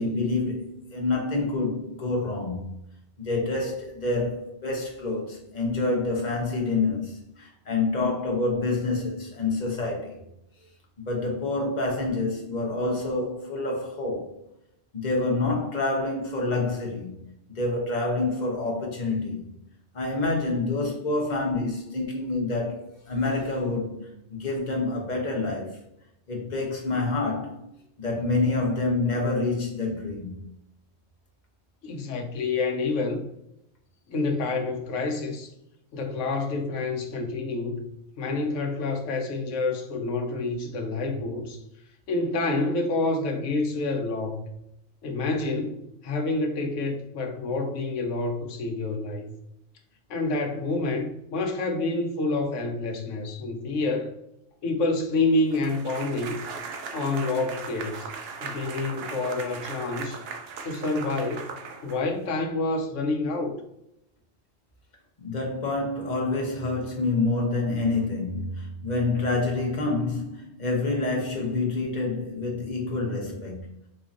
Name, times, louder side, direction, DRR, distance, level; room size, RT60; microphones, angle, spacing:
voice 1, 0.0-2.6 3.2-10.2 11.0-14.3 14.9-17.2 17.5-19.5 19.9-24.0 24.3-25.8 26.3-27.6 28.0-30.4 65.2-73.7, left 3 dB, 40° left, 0.9 m, -27 dB
voice 2, 31.8-33.2 34.1-35.5 35.9-37.9 38.2-41.6 42.1-44.5 45.0-49.3 50.1-54.2 54.6-56.4 56.9-58.1 58.4-60.2 60.6-61.5 61.8-63.6, left 3 dB, 80° left, 1.0 m, -28 dB
sound 1, 55.5-62.3, right 5 dB, 65° right, 0.7 m, -38 dB
4.1 x 2.8 x 2.5 m
omnidirectional pair, 1.2 m